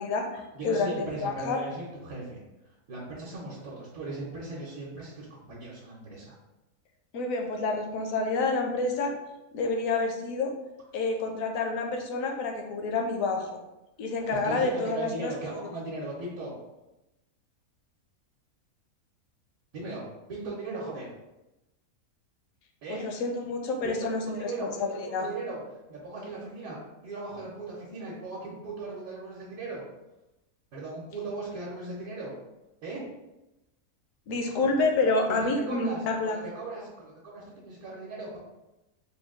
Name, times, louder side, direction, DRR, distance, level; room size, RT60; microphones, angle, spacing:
voice 1, 0.0-1.6 7.1-9.1 9.5-10.5 10.9-13.5 14.0-15.3 22.9-25.3 34.3-36.4, left 3 dB, 70° left, 3 dB, 1.0 m, -28 dB
voice 2, 0.5-2.4 2.9-6.3 14.4-16.5 19.7-20.0 20.3-21.1 22.8-23.0 23.8-25.6 25.9-26.8 27.0-29.8 30.7-32.3 32.8-33.0 35.3-38.4, right 3 dB, 75° right, -6 dB, 1.3 m, -38 dB
3.7 x 2.2 x 3.6 m, 0.98 s
omnidirectional pair, 1.5 m